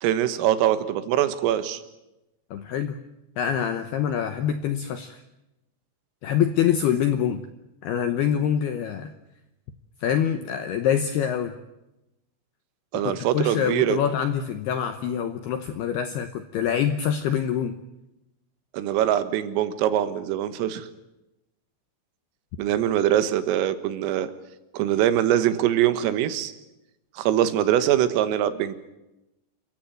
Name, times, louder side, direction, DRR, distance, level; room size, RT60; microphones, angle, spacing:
voice 1, 0.0-1.8 12.9-14.0 18.7-20.9 22.6-24.3 24.7-26.5 27.2-28.8, right 11 dB, 85° right, 12 dB, 4.0 m, -23 dB
voice 2, 2.5-3.0 3.4-5.2 6.2-7.5 7.8-9.1 10.0-11.6 13.0-17.8, left 9 dB, 80° left, 9 dB, 2.3 m, -25 dB
28.5 x 15.0 x 9.2 m, 0.94 s
omnidirectional pair, 6.0 m